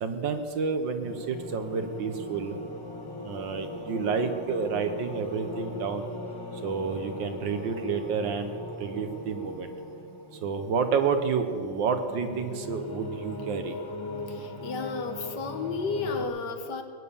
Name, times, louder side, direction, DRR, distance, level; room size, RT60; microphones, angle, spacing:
voice 1, 0.0-2.6 3.2-6.1 6.6-8.5 8.8-9.7 10.4-13.8, right 5 dB, 65° right, 8 dB, 1.6 m, -29 dB
sound 1, 1.0-16.2, left 1 dB, 15° left, 1.0 m, -39 dB
voice 2, 14.3-16.8, left 4 dB, 60° left, 7 dB, 1.5 m, -32 dB
20.0 x 9.1 x 7.0 m, 2.3 s
omnidirectional pair, 2.2 m